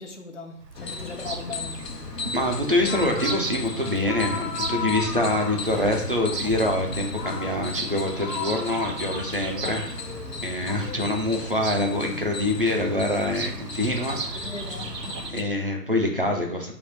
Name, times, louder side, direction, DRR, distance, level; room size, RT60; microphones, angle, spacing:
voice 1, 0.0-1.8 9.6-9.8 14.1-15.2, left 3 dB, 50° left, 0.8 m, -38 dB
Bird vocalization bird call bird song, 0.6-15.3, right 4 dB, 80° right, 0.8 m, -37 dB
sound 1, 0.7-15.4, left 5 dB, 85° left, 0.9 m, -34 dB
voice 2, 2.3-9.9 10.4-14.5 15.3-16.7, left 1 dB, 35° right, 0.6 m, -25 dB
3.3 x 3.1 x 4.3 m
figure-of-eight pair, 165°, 48 cm